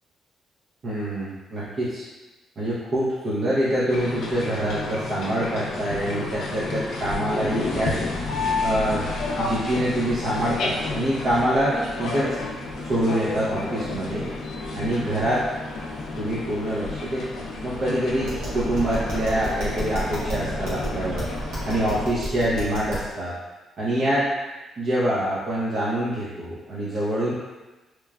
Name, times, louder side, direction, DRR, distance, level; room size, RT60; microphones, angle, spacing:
voice 1, 0.8-2.1 2.6-8.0 8.6-9.0 9.4-12.3 12.8-14.2 14.7-15.4 16.2-21.3 21.7-23.3 23.8-24.3 24.8-27.3, right 1 dB, 55° right, -9 dB, 0.5 m, -25 dB
sound 1, 3.9-22.1, left 3 dB, 70° left, 0.4 m, -31 dB
Tap, 18.2-23.1, equal, 85° right, 0.9 m, -32 dB
3.0 x 2.2 x 2.3 m, 1.2 s
cardioid pair, 90°, 0 cm